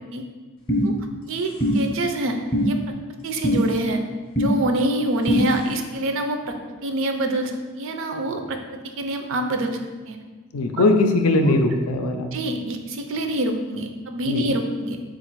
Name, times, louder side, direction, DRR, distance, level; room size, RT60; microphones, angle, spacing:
sound 1, 0.7-0.8 1.6-1.7 2.5-2.7 3.4-3.6 4.4-4.5 5.3-5.4, equal, 25° left, 0.6 m, -21 dB
voice 1, 1.3-2.8 3.2-4.0 4.4-6.5 6.8-8.6 9.0-9.8 10.1-10.2 10.8-10.9 11.4-11.5 12.3-15.0, right 1 dB, 60° right, 5 dB, 0.4 m, -26 dB
voice 2, 10.5-12.3 14.2-14.5, left 2 dB, 75° left, 5 dB, 0.4 m, -20 dB
3.9 x 2.4 x 4.5 m, 1.3 s
head